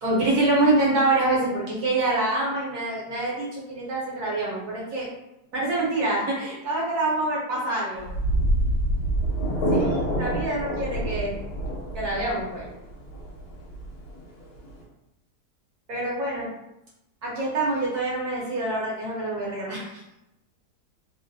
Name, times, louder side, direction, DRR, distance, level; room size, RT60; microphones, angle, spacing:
voice 1, 0.0-5.1 5.5-8.1 9.7-11.4 11.9-12.7 15.9-16.5 17.2-20.0, right 2 dB, 70° right, -5 dB, 1.3 m, -26 dB
sound 1, 8.0-14.8, right 1 dB, 75° left, 1.2 m, -27 dB
3.1 x 2.4 x 2.3 m, 0.89 s
omnidirectional pair, 1.7 m